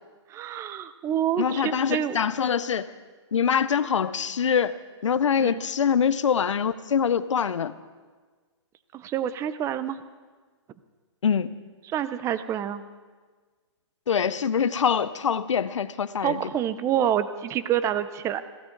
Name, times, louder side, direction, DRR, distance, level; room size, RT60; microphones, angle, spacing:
voice 1, 0.3-2.2 5.4-5.6 8.9-10.0 11.9-12.8 16.2-18.4, right 10 dB, 20° right, 13 dB, 0.7 m, -27 dB
voice 2, 1.4-2.9 3.3-4.8 5.0-7.7 11.2-11.5 14.1-16.4, left 7 dB, 90° left, 14 dB, 0.7 m, -24 dB
21.0 x 16.5 x 3.9 m, 1.4 s
hypercardioid pair, 145°, 15 cm